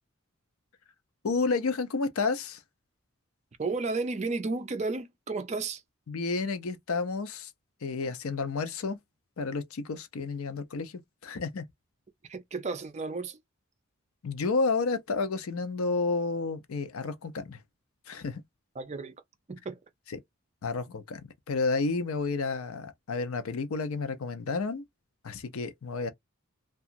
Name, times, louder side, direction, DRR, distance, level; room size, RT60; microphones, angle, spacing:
voice 1, 1.2-2.6 6.1-7.5 7.8-9.0 9.4-11.6 14.2-17.6 18.1-18.4 20.1-20.2 20.6-24.8 25.2-26.1, left 4 dB, 85° left, 0.5 m, -31 dB
voice 2, 3.6-5.8 12.3-13.4 18.8-19.1 19.5-19.8, right 3 dB, 30° right, 0.4 m, -33 dB
2.8 x 2.3 x 2.5 m
head